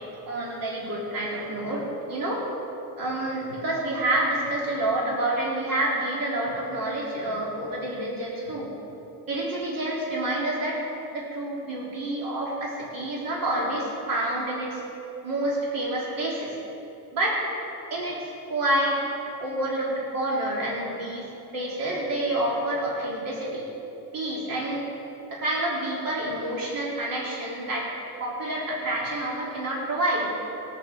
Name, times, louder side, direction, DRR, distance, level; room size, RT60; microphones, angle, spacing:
voice 1, 0.0-2.4 3.0-8.7 9.3-10.8 11.1-14.8 15.2-16.5 17.1-17.4 17.9-18.2 18.5-19.0 19.4-23.7 24.1-24.9 25.3-27.9 28.2-30.3, right 1 dB, 60° right, -5 dB, 3.2 m, -28 dB
21.0 x 7.3 x 4.8 m, 3.0 s
cardioid pair, 120°, 38 cm